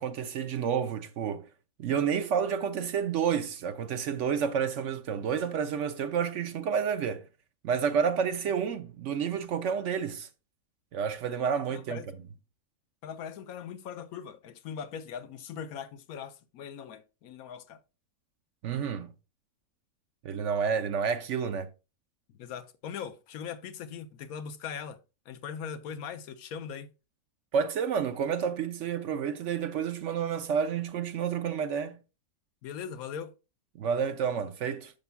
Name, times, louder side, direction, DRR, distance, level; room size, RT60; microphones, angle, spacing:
voice 1, 0.0-1.5 1.8-7.3 7.6-10.3 10.9-12.0 18.6-19.1 20.2-21.7 27.5-32.0 33.7-34.9, right 7 dB, 65° right, 0.9 m, -30 dB
voice 2, 11.7-12.0 13.0-17.8 22.4-25.0 25.3-26.9 32.6-33.3, left 7 dB, 75° left, 1.1 m, -40 dB
10.5 x 6.8 x 2.2 m
omnidirectional pair, 1.5 m